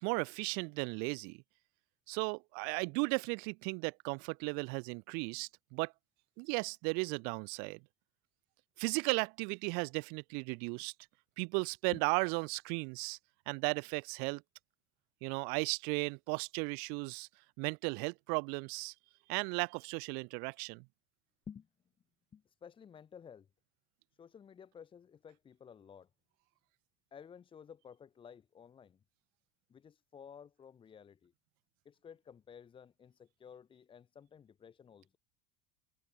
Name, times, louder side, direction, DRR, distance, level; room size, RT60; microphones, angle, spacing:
voice 1, 0.0-1.4 2.1-5.9 6.4-7.8 8.8-10.9 11.4-13.2 13.5-14.4 15.2-17.3 17.6-18.9 19.3-20.8, right 37 dB, 70° right, 0.7 m, -35 dB
voice 2, 22.3-23.5 24.2-26.1 27.1-29.0 29.7-31.3 31.8-35.2, left 7 dB, 30° left, 2.3 m, -54 dB
supercardioid pair, 95°, 17 cm